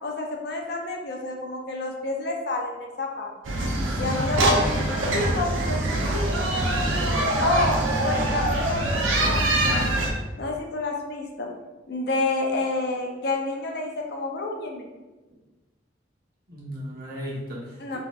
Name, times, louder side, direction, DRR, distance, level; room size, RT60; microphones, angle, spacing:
voice 1, 0.0-3.3 4.0-6.5 7.4-10.0 10.4-11.5 11.9-14.9 17.8-18.0, left 2 dB, 55° left, 1 dB, 0.5 m, -29 dB
sound 1, 3.5-10.1, right 1 dB, 85° right, 0.6 m, -24 dB
voice 2, 3.8-4.4 16.5-18.0, equal, 50° right, -6 dB, 1.0 m, -35 dB
4.1 x 2.7 x 2.3 m, 1.1 s
head